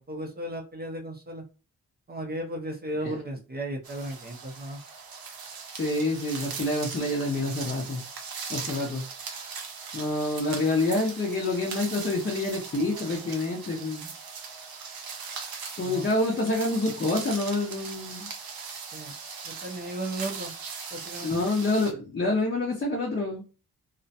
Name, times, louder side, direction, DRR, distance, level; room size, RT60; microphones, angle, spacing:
voice 1, 0.0-1.4 2.1-4.8 15.8-16.1 18.9-19.2 19.4-20.5 20.9-21.3, right 1 dB, 30° right, 2 dB, 0.5 m, -35 dB
sound 1, 3.8-21.9, right 5 dB, 90° right, 0.6 m, -40 dB
voice 2, 5.8-8.0 8.5-9.0 9.9-14.1 15.8-18.3 21.2-23.4, left 2 dB, 30° left, -2 dB, 0.5 m, -27 dB
2.4 x 2.1 x 2.6 m, 0.34 s
wide cardioid pair, 115°, 35 cm